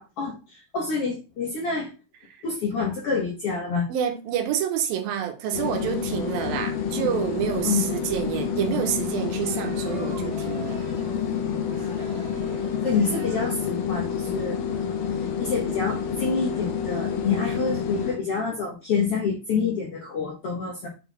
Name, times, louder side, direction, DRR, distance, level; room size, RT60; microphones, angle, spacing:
voice 1, 0.2-1.9 2.4-3.9 7.6-7.9 8.1-8.3 12.8-14.6 15.4-20.9, left 5 dB, 70° left, 1.4 m, -27 dB
voice 2, 3.9-10.8, right 10 dB, 80° right, 2.7 m, -28 dB
sound 1, 5.5-18.2, left 7 dB, 85° left, 2.5 m, -28 dB
sound 2, 7.3-8.1 9.3-13.5, right 3 dB, 55° right, 1.7 m, -45 dB
6.6 x 4.0 x 4.0 m
omnidirectional pair, 4.2 m